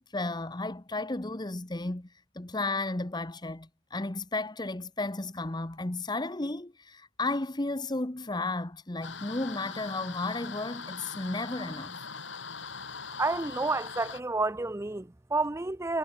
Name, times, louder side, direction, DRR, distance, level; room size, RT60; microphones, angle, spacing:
voice 1, 0.0-2.1 2.3-12.0, left 2 dB, 20° left, 1.0 m, -33 dB
sound 1, 9.0-14.2, left 5 dB, 60° left, 5.2 m, -41 dB
voice 2, 13.2-16.0, right 3 dB, 15° right, 0.5 m, -30 dB
head